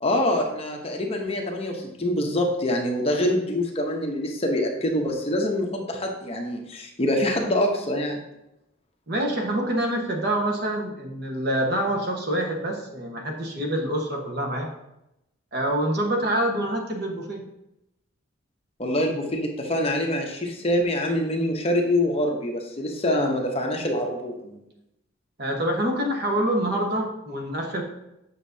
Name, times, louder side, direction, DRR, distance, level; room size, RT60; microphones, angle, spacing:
voice 1, 0.0-8.2 18.8-24.6, left 1 dB, 30° left, 2 dB, 0.8 m, -25 dB
voice 2, 9.1-14.7 15.5-17.4 25.4-27.8, right 1 dB, 50° right, 1 dB, 1.2 m, -26 dB
8.1 x 6.1 x 2.7 m, 0.87 s
head